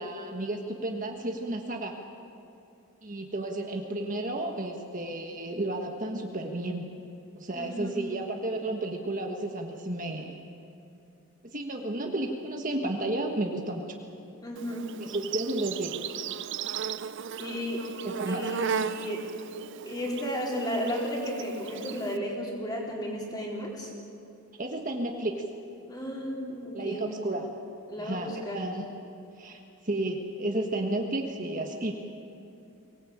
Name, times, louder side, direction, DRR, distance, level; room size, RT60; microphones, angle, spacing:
voice 1, 0.0-1.9 3.0-6.9 7.3-10.4 11.4-13.9 15.0-16.1 18.0-18.5 24.6-25.3 26.7-27.5 28.0-28.9 29.4-32.0, right 1 dB, 35° right, 2 dB, 1.5 m, -32 dB
voice 2, 7.5-8.0 14.4-14.9 17.4-17.9 18.3-19.3 19.9-23.9 25.9-27.2 27.9-28.6, equal, 20° left, -2 dB, 4.0 m, -33 dB
Insect, 14.6-22.2, right 7 dB, 55° right, 0.5 m, -36 dB
24.0 x 18.5 x 8.7 m, 2.7 s
head